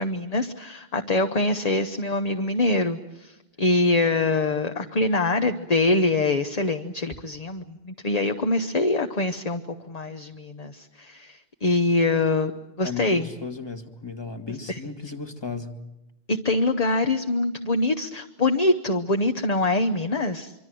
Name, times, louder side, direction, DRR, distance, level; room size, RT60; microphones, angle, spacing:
voice 1, 0.0-9.6 9.9-12.5 12.8-13.3 14.7-14.8 16.3-20.5, left 2 dB, 40° left, 6 dB, 1.0 m, -24 dB
voice 2, 12.8-15.8, left 4 dB, 25° left, 7 dB, 1.8 m, -35 dB
25.0 x 25.0 x 7.7 m, 0.98 s
omnidirectional pair, 1.1 m